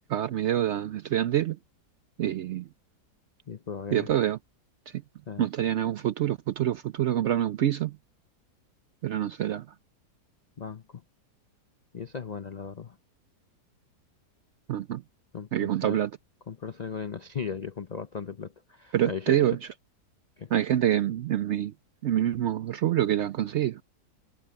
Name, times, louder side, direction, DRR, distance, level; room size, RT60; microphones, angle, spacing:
voice 1, 0.1-1.6 2.2-2.6 3.9-4.4 5.4-7.9 9.0-9.6 14.7-15.0 15.5-16.1 18.9-19.6 20.5-21.7 22.0-23.8, right 11 dB, 80° right, 0.6 m, -26 dB
voice 2, 3.5-4.1 5.3-5.5 10.6-10.8 11.9-12.9 15.3-16.0 16.5-19.5 20.4-20.5, left 6 dB, 90° left, 0.3 m, -37 dB
omnidirectional pair, 1.8 m